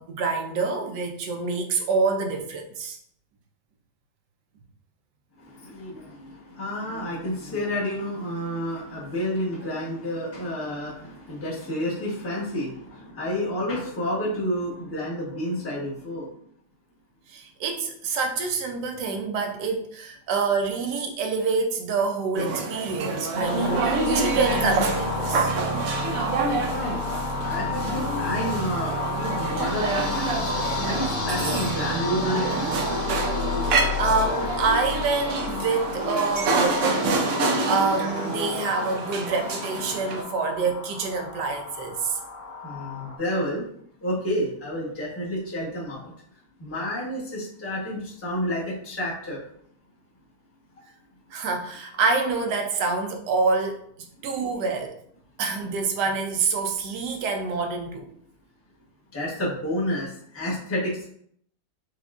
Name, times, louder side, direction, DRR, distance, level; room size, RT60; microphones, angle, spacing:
voice 1, 0.0-3.0 17.3-25.5 33.6-37.2 37.7-42.2 51.3-53.9 54.2-55.0 55.4-58.1, right 4 dB, 90° right, 4 dB, 1.2 m, -26 dB
voice 2, 5.4-16.3 26.7-30.4 30.8-32.7 42.6-43.7 44.0-46.1 46.6-49.4 59.1-61.1, equal, 10° left, -6 dB, 0.8 m, -30 dB
sound 1, 22.3-40.2, right 3 dB, 70° right, 0.9 m, -28 dB
sound 2, 23.4-43.2, left 3 dB, 90° left, 1.4 m, -31 dB
4.7 x 2.4 x 2.4 m, 0.65 s
omnidirectional pair, 1.8 m